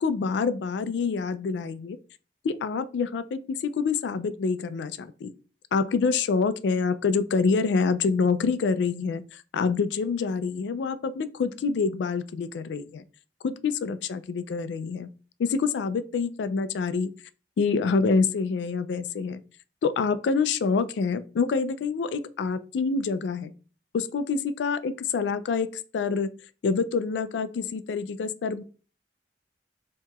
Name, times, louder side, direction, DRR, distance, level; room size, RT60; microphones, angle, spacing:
voice 1, 0.0-2.0 2.4-5.3 5.7-13.0 13.4-15.1 15.4-17.1 17.6-19.4 19.8-23.5 23.9-25.7 25.9-26.3 26.6-28.6, left 5 dB, 75° left, 0.3 m, -26 dB
4.5 x 2.9 x 2.3 m
head